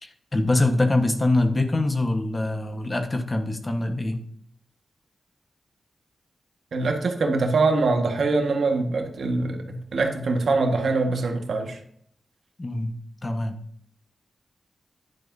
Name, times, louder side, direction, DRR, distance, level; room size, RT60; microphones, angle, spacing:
voice 1, 0.0-4.2 12.6-13.0 13.2-13.6, left 2 dB, 30° left, 6 dB, 1.3 m, -24 dB
voice 2, 6.7-11.8, right 3 dB, 80° right, 4 dB, 1.6 m, -23 dB
10.5 x 10.0 x 2.7 m, 0.66 s
cardioid pair, 70°, 0 cm